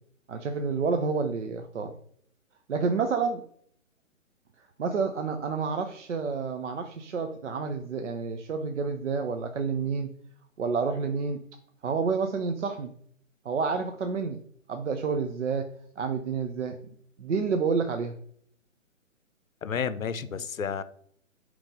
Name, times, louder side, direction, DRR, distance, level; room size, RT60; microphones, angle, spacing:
voice 1, 0.3-1.9 2.7-3.4 4.8-10.1 10.6-11.4 11.8-12.9 13.4-14.4 14.7-16.8 17.2-18.1, right 5 dB, 60° right, 0.6 m, -29 dB
voice 2, 19.6-20.8, left 7 dB, 85° left, 0.6 m, -31 dB
3.8 x 3.0 x 3.7 m
figure-of-eight pair, 140°, 40 cm